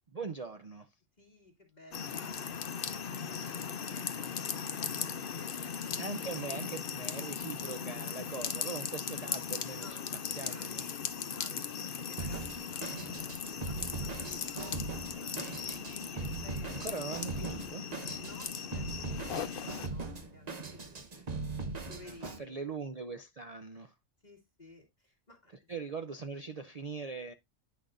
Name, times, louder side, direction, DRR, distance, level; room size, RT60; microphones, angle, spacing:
voice 1, 0.1-0.9 6.0-10.8 15.1-16.3 16.5-17.9 22.0-23.9 25.7-27.3, right 4 dB, 65° right, 0.3 m, -42 dB
voice 2, 1.2-2.6 2.9-5.1 5.3-5.9 9.7-15.7 16.4-17.2 18.2-21.2 21.9-22.6 24.2-25.5, left 2 dB, 30° left, 2.0 m, -55 dB
sound 1, 1.9-19.9, left 7 dB, 50° left, 0.8 m, -38 dB
Drum kit, 12.2-22.4, right 3 dB, 35° right, 0.9 m, -40 dB
9.5 x 6.2 x 2.5 m
omnidirectional pair, 1.4 m